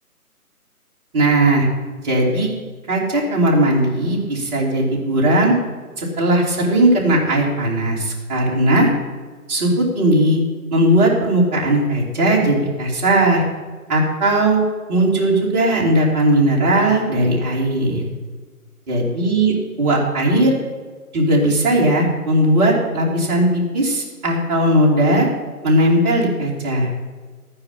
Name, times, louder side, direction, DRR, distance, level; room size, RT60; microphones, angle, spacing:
voice 1, 1.1-1.7 2.0-2.5 2.9-5.5 6.0-8.9 9.5-10.4 10.7-13.4 13.9-14.6 14.9-18.0 18.9-20.5 21.1-25.3 25.6-26.9, right 1 dB, 25° right, -3 dB, 2.9 m, -17 dB
13.0 x 9.7 x 5.7 m, 1.5 s
figure-of-eight pair, 150°, 46 cm